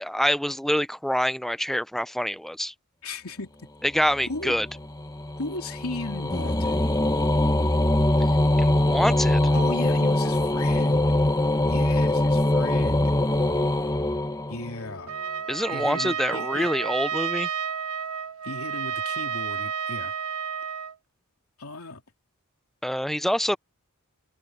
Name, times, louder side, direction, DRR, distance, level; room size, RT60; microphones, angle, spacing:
voice 1, 0.0-2.7 3.9-4.7 8.6-9.4 15.5-17.5 22.8-23.6, equal, ahead, 0.5 m, -26 dB
voice 2, 3.0-3.5 4.3-4.5 5.4-6.8 9.5-11.1 11.7-13.1 14.5-15.1 15.7-16.7 18.4-20.1 21.6-22.0, left 2 dB, 80° left, 3.1 m, -36 dB
sound 1, 4.0-14.9, left 1 dB, 15° left, 1.3 m, -23 dB
Trumpet, 15.1-21.0, right 7 dB, 85° right, 1.2 m, -31 dB
head